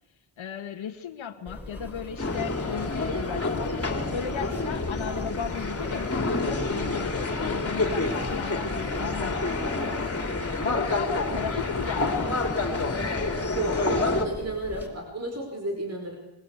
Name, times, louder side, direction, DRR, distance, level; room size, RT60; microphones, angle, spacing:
voice 1, 0.4-3.7 4.0-10.0 10.6-12.4, left 8 dB, 80° left, 4 dB, 2.0 m, -36 dB
sound 1, 1.5-14.9, left 1 dB, 5° right, 6.0 m, -41 dB
sound 2, 2.2-14.3, left 3 dB, 30° left, 3.5 m, -28 dB
voice 2, 13.5-16.2, right 1 dB, 35° right, 2 dB, 5.3 m, -32 dB
26.0 x 22.0 x 8.3 m, 0.95 s
wide cardioid pair, 110°, 47 cm